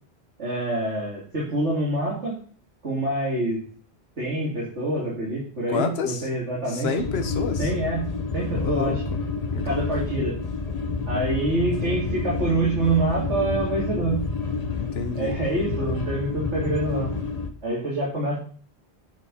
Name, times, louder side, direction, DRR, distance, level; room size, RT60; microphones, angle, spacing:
voice 1, 0.4-2.4 2.8-3.6 4.2-6.9 7.6-8.1 8.3-9.0 9.6-10.4 11.1-14.2 15.1-17.1 17.6-18.4, right 2 dB, 85° right, -6 dB, 3.5 m, -26 dB
voice 2, 5.7-6.3 6.7-7.7 8.6-9.0 9.5-9.9 14.7-15.4, left 5 dB, 65° left, 7 dB, 1.4 m, -29 dB
sound 1, 7.0-17.5, left 4 dB, 35° left, 1.0 m, -29 dB
10.0 x 5.2 x 5.7 m, 0.43 s
omnidirectional pair, 1.1 m